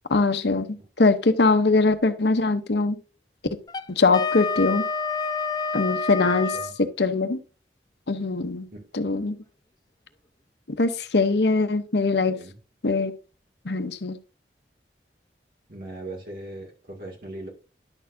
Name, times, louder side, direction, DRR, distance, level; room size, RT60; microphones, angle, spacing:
voice 1, 0.1-3.0 3.9-4.8 5.7-7.4 8.1-8.7 8.9-9.4 10.8-12.4 12.8-13.1 13.6-14.2, left 3 dB, 75° left, 0.9 m, -22 dB
Wind instrument woodwind instrument, 3.7-6.8, left 4 dB, 25° left, 0.5 m, -28 dB
voice 2, 15.7-17.5, right 1 dB, 55° right, 2.2 m, -39 dB
10.5 x 6.6 x 2.6 m
head